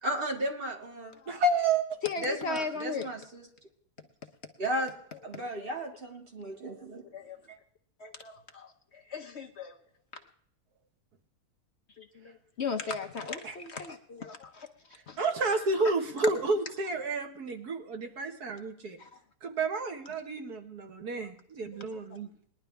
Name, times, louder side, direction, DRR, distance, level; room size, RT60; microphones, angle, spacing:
voice 1, 0.0-1.1 2.2-3.4 4.6-4.9 5.2-7.0 7.5-7.6, right 1 dB, 35° right, 1 dB, 2.2 m, -34 dB
voice 2, 1.3-2.0 13.4-13.6 15.2-19.0 19.4-22.3, right 3 dB, 90° right, 5 dB, 2.0 m, -30 dB
voice 3, 2.0-3.1 7.1-7.4 8.0-9.8 12.0-14.7 15.1-15.2 15.8-15.9 19.0-19.1 21.7-21.8, left 4 dB, 50° left, 5 dB, 1.0 m, -37 dB
20.0 x 11.5 x 3.4 m, 0.63 s
omnidirectional pair, 1.6 m